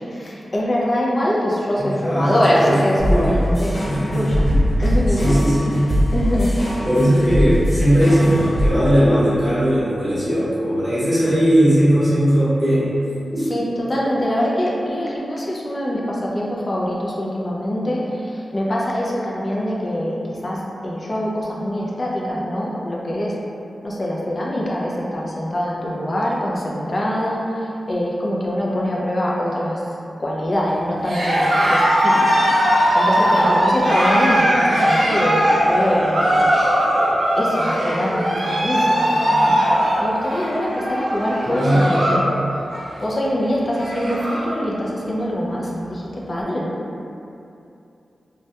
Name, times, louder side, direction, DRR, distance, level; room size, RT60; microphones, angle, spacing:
voice 1, 0.0-4.4 4.8-5.4 6.1-6.5 13.5-20.2 20.4-23.3 23.8-27.5 27.9-29.8 30.2-32.4 32.9-36.5 37.4-39.6 40.0-42.4 43.0-46.7, equal, 30° left, -4 dB, 0.3 m, -23 dB
voice 2, 1.8-3.4 3.8-4.2 5.2-5.7 6.8-12.9 13.3-13.6 41.4-42.0, equal, 5° left, -14 dB, 0.9 m, -18 dB
sound 1, 3.0-8.7, equal, 80° left, 1.0 m, -21 dB
Cheering, 31.0-42.3 42.6-43.0 43.4-43.5 43.7-44.5, equal, 55° right, 0.4 m, -19 dB
2.2 x 2.1 x 2.7 m, 2.7 s
wide cardioid pair, 165°, 0 cm